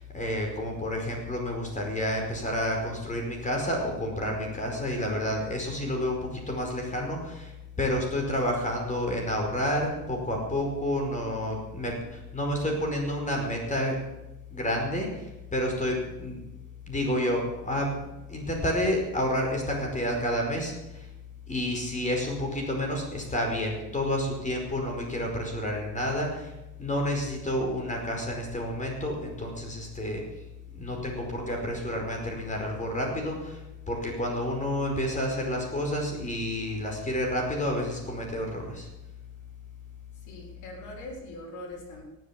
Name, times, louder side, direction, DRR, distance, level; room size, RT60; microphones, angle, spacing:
voice 1, 0.0-14.0 14.5-16.4 16.9-21.1 21.5-26.5 26.8-30.2 30.7-38.9, left 1 dB, 25° left, 1 dB, 5.1 m, -30 dB
voice 2, 40.3-42.0, left 1 dB, 65° left, -3 dB, 4.9 m, -42 dB
18.0 x 8.2 x 8.5 m, 0.95 s
cardioid pair, 105°, 32 cm